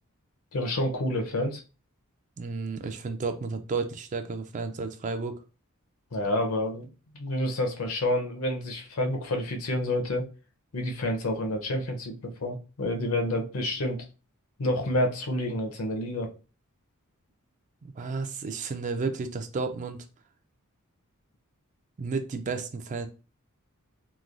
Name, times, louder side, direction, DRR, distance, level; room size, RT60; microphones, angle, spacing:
voice 1, 0.5-1.6 6.1-6.9 7.1-10.3 10.7-14.0 14.6-16.3, left 1 dB, 70° left, 4 dB, 0.7 m, -28 dB
voice 2, 2.4-5.4 17.8-20.1 22.0-23.1, right 4 dB, 35° right, 8 dB, 0.3 m, -32 dB
3.1 x 2.2 x 2.4 m, 0.33 s
head